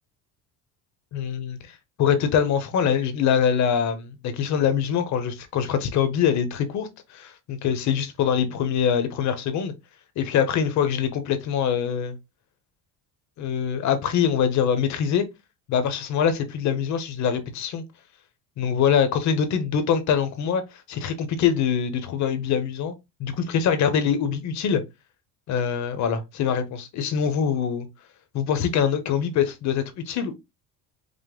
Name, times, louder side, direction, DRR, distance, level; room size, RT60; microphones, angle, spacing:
voice 1, 1.1-9.7 10.2-12.2 13.4-15.2 15.7-17.8 18.6-20.6 20.9-22.9 23.2-24.8 25.5-27.9 28.3-30.4, left 8 dB, 45° left, 0.8 m, -24 dB
5.1 x 2.0 x 3.6 m
cardioid pair, 160°, 39 cm